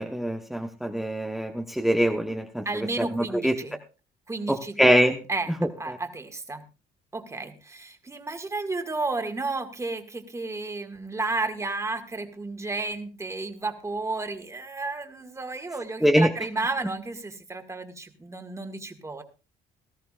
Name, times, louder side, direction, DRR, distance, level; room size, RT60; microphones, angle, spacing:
voice 1, 0.0-2.7 3.0-3.5 4.5-5.2 16.0-16.3, equal, ahead, 3 dB, 1.0 m, -23 dB
voice 2, 2.7-3.8 4.3-4.8 5.3-5.5 5.8-6.6 7.1-19.2, right 3 dB, 15° right, 6 dB, 1.9 m, -32 dB
18.5 x 13.5 x 2.4 m, 0.32 s
cardioid pair, 110°, 17 cm